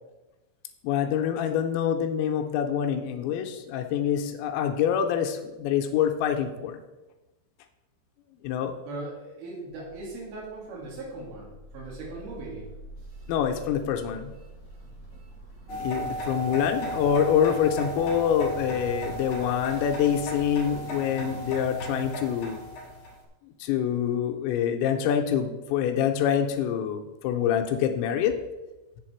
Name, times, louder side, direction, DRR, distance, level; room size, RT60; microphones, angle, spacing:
voice 1, 0.8-6.8 8.4-8.8 13.3-14.3 15.8-22.6 23.6-28.4, left 9 dB, 85° left, 5 dB, 2.9 m, -26 dB
voice 2, 8.9-12.7 14.8-14.9, right 2 dB, 60° right, -3 dB, 3.9 m, -39 dB
sound 1, 9.7-20.8, right 1 dB, 25° right, 0.5 m, -47 dB
sound 2, 15.7-23.2, right 1 dB, 50° left, 2.1 m, -35 dB
8.2 x 7.1 x 4.4 m, 1.1 s
omnidirectional pair, 5.4 m